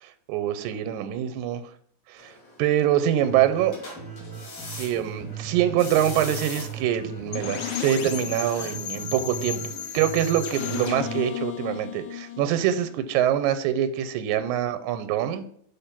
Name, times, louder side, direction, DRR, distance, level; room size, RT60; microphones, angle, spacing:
voice 1, 0.0-1.6 2.1-2.3 2.6-3.8 4.8-9.6 9.9-15.4, right 11 dB, 90° right, 10 dB, 2.0 m, -24 dB
sound 1, 2.2-8.7, left 3 dB, 45° left, 1.7 m, -42 dB
sound 2, 3.2-11.2, right 6 dB, 10° right, 0.8 m, -39 dB
sound 3, 7.3-13.1, left 10 dB, 85° left, 1.2 m, -34 dB
5.7 x 3.4 x 5.8 m, 0.66 s
omnidirectional pair, 3.3 m